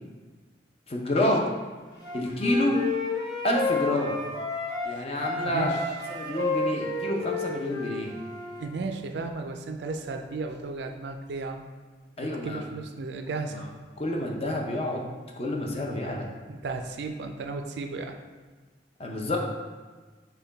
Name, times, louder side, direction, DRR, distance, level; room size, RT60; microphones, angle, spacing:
voice 1, 0.9-1.5 2.1-2.8 3.4-4.2 4.8-5.7 6.1-8.1 12.2-12.6 13.5-13.7 14.0-16.3 19.0-19.4, left 1 dB, 35° left, 0 dB, 0.6 m, -28 dB
Wind instrument woodwind instrument, 2.0-4.9 5.2-8.7, left 3 dB, 70° left, 1.1 m, -31 dB
voice 2, 5.4-5.8 6.2-6.6 8.6-11.6 12.2-13.7 16.5-18.2, right 3 dB, 70° right, 5 dB, 0.4 m, -34 dB
5.6 x 2.2 x 3.9 m, 1.4 s
head